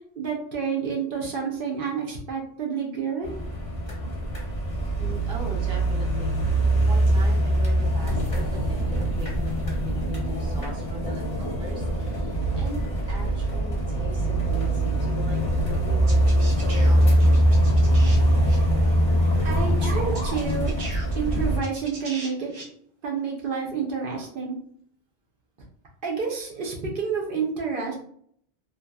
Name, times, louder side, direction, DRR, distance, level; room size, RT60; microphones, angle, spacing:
voice 1, 0.2-3.3 19.4-20.7 21.1-22.5 23.0-24.6 26.0-27.9, right 6 dB, 60° right, -1 dB, 0.7 m, -29 dB
sound 1, 3.2-21.6, right 1 dB, 40° left, 0.7 m, -23 dB
voice 2, 5.0-12.8 13.1-17.2, right 1 dB, 5° right, -4 dB, 0.4 m, -40 dB
sound 2, 13.0-20.4, right 1 dB, 30° right, 0.7 m, -45 dB
sound 3, 16.1-18.2 18.4-18.6 19.8-19.9 20.1-22.6, right 2 dB, 80° right, 1.0 m, -40 dB
2.7 x 2.3 x 2.2 m, 0.64 s
omnidirectional pair, 1.1 m